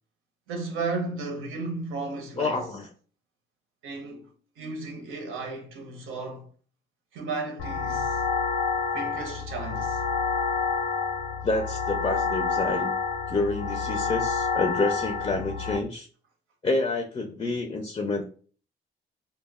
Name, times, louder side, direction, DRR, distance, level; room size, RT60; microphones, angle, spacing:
voice 1, 0.5-2.6 3.8-4.3 4.6-6.5 7.1-8.2 8.9-10.0, right 3 dB, 85° right, 0.8 m, -34 dB
voice 2, 2.4-2.9 11.4-12.9 13.3-16.1 16.6-18.2, left 3 dB, 25° left, 0.4 m, -28 dB
sound 1, 7.6-15.8, left 5 dB, 75° left, 0.5 m, -28 dB
2.1 x 2.0 x 3.5 m
cardioid pair, 90°, 20 cm